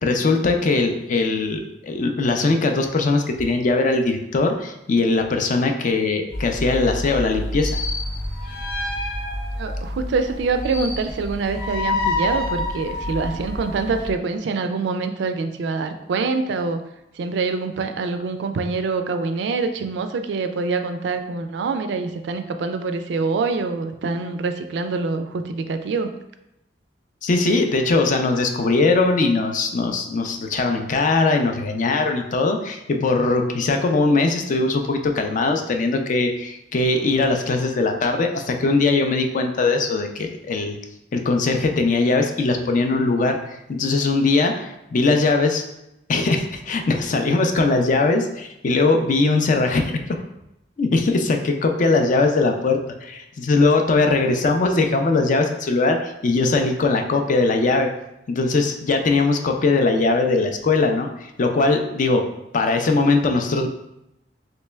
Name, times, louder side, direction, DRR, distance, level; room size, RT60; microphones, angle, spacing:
voice 1, 0.0-7.8 27.2-40.8 41.1-45.6 46.1-50.2 50.8-57.9 58.3-62.2 62.5-63.7, left 3 dB, 45° left, 5 dB, 0.4 m, -20 dB
sound 1, 6.3-14.1, left 2 dB, 75° left, 1.1 m, -28 dB
voice 2, 9.6-16.8 17.2-26.1, right 4 dB, 70° right, 8 dB, 0.3 m, -25 dB
3.2 x 2.9 x 3.3 m, 0.86 s
head